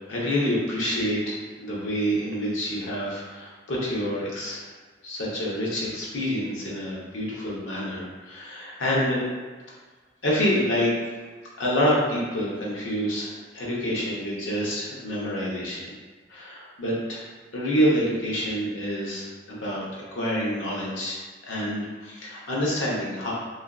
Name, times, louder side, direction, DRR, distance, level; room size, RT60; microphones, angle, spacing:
voice 1, 0.1-4.7 5.0-9.2 10.2-11.1 11.6-15.9 16.3-17.2 17.5-23.3, equal, 85° left, -5 dB, 0.7 m, -27 dB
2.4 x 2.3 x 2.2 m, 1.4 s
head